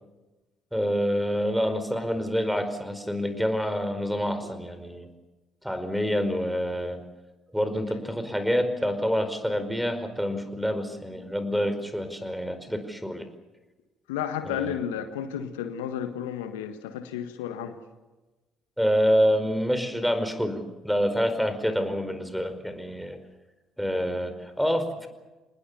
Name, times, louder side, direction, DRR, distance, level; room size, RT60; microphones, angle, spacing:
voice 1, 0.7-5.1 5.6-7.0 7.5-13.3 14.4-14.7 18.8-23.2 23.8-25.1, equal, ahead, 9 dB, 4.9 m, -27 dB
voice 2, 14.1-17.8, left 9 dB, 80° left, 8 dB, 1.6 m, -32 dB
27.0 x 20.0 x 6.8 m, 1.1 s
hypercardioid pair, 50°, 0 cm